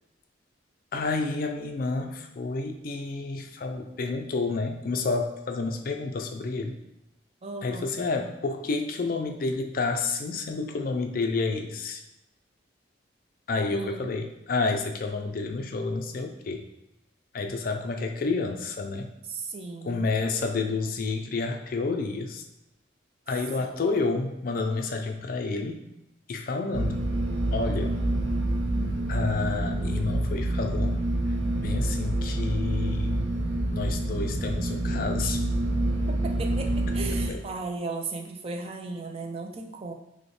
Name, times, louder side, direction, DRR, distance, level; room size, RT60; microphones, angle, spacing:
voice 1, 0.9-6.8 7.6-12.0 13.5-16.6 17.3-19.1 19.8-22.4 23.3-25.8 26.3-27.0 27.5-28.0 29.1-31.0 31.6-33.2 33.7-35.5 37.3-37.4, left 3 dB, 45° left, 4 dB, 0.4 m, -29 dB
voice 2, 7.4-7.9 13.7-14.1 19.2-20.1 23.6-23.8 36.1-39.9, right 3 dB, 30° right, 3 dB, 0.3 m, -36 dB
sound 1, 26.7-37.3, right 1 dB, 85° right, 0.7 m, -27 dB
5.1 x 2.1 x 3.1 m, 0.90 s
head